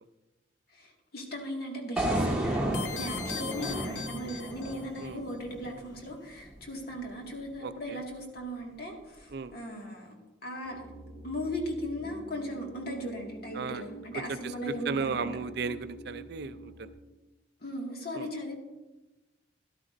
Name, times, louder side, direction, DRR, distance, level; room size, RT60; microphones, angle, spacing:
voice 1, 0.7-10.1 10.4-10.8 11.2-15.5 17.6-18.6, equal, 55° left, 0 dB, 1.9 m, -38 dB
sound 1, 2.0-6.1, right 1 dB, 5° right, 1.5 m, -32 dB
sound 2, 2.7-5.1, left 6 dB, 80° left, 0.8 m, -40 dB
voice 2, 7.6-8.0 9.3-9.5 13.5-13.8 14.3-14.4 14.9-16.9 18.2-18.3, right 5 dB, 60° right, 12 dB, 0.4 m, -35 dB
sound 3, 10.6-16.9, right 2 dB, 25° left, 1.6 m, -46 dB
13.5 x 11.5 x 2.6 m, 1.1 s
head